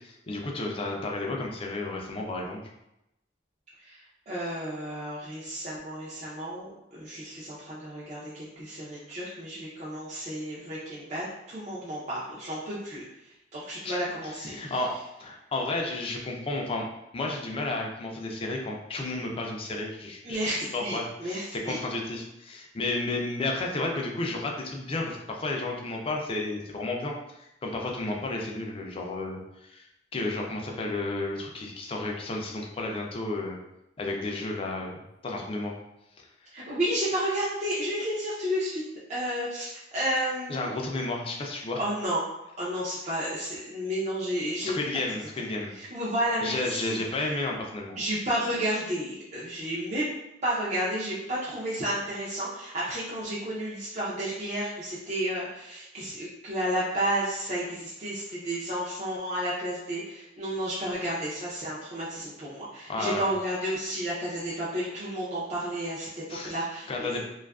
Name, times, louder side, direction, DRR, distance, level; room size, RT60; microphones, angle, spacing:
voice 1, 0.0-2.6 13.8-14.0 14.4-14.9 15.2-16.9 17.1-20.4 20.7-29.9 30.1-33.6 34.0-35.8 40.5-41.8 44.6-45.8 46.4-48.0 62.9-63.3 66.3-66.6 66.9-67.2, left 2 dB, 30° left, 0 dB, 0.3 m, -32 dB
voice 2, 3.8-14.8 20.2-21.8 36.5-38.8 39.1-41.1 41.7-42.2 42.6-44.8 45.7-47.3 48.0-50.1 50.4-67.2, right 1 dB, 35° right, -8 dB, 0.5 m, -32 dB
2.6 x 2.3 x 2.3 m, 0.88 s
head